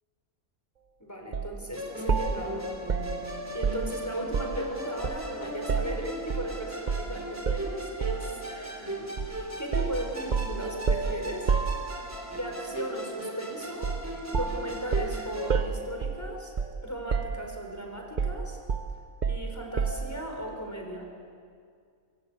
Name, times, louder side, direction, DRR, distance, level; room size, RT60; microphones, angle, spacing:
voice 1, 1.0-2.7 3.5-11.5 12.3-13.9 14.3-16.5 16.8-18.6 19.3-21.1, right 1 dB, 10° left, 2 dB, 4.7 m, -37 dB
sound 1, 1.3-1.5 2.1-4.7 5.0-6.5 6.9-7.1 7.4-8.3 9.2-9.4 9.7-12.3 13.8-14.1 14.3-16.8 17.1-17.7 18.2-20.1, right 5 dB, 40° right, 0.8 m, -30 dB
Musical instrument, 1.7-15.5, equal, 10° right, 3.6 m, -38 dB
24.5 x 23.0 x 8.5 m, 2.2 s
omnidirectional pair, 1.4 m